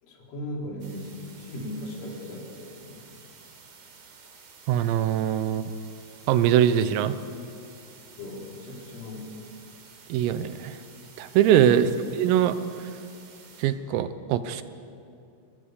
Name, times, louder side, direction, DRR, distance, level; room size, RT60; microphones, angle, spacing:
voice 1, 0.0-3.0 8.2-9.4 11.8-12.0, left 1 dB, 70° left, -2 dB, 6.6 m, -38 dB
sound 1, 0.8-13.6, right 5 dB, 55° right, 5.1 m, -51 dB
voice 2, 4.7-5.7 6.3-7.2 10.1-10.8 11.2-12.6 13.6-14.6, right 10 dB, 85° right, 12 dB, 3.7 m, -22 dB
29.0 x 23.0 x 8.3 m, 2.6 s
omnidirectional pair, 5.9 m